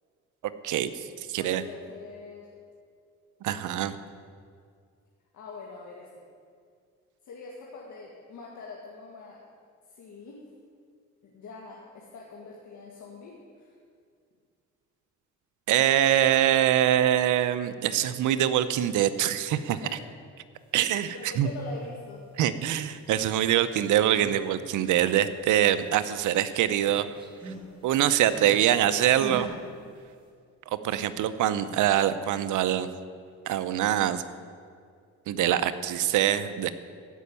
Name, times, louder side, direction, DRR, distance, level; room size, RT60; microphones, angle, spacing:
voice 1, 0.6-1.6 3.4-4.0 15.7-19.8 20.7-21.5 22.4-27.1 27.5-27.6 27.8-29.5 30.7-32.9 33.5-34.2 35.3-36.7, right 11 dB, 80° right, 12 dB, 0.8 m, -24 dB
voice 2, 1.4-2.5 5.3-6.1 7.2-9.4 9.9-10.4 11.2-13.7 19.8-20.0 21.0-22.2, left 4 dB, 70° left, -3 dB, 2.0 m, -43 dB
sound 1, 23.9-24.5 24.8-26.2 26.5-28.7 29.2-29.6, right 2 dB, 15° right, 3.2 m, -42 dB
15.5 x 5.5 x 9.5 m, 2.2 s
cardioid pair, 90°, 30 cm